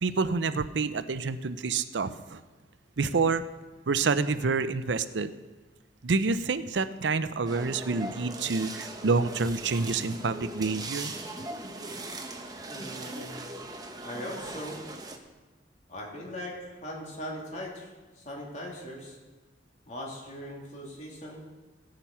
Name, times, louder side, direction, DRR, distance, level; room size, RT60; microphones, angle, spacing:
voice 1, 0.0-2.4 3.0-3.4 3.9-5.3 6.0-11.1, right 4 dB, 75° right, 13 dB, 0.6 m, -28 dB
sound 1, 7.5-15.2, right 2 dB, 20° right, 1.1 m, -39 dB
voice 2, 12.7-13.3 14.0-14.8 15.9-19.2 19.9-21.4, equal, 40° left, -2 dB, 3.3 m, -40 dB
16.0 x 8.8 x 5.7 m, 1.3 s
head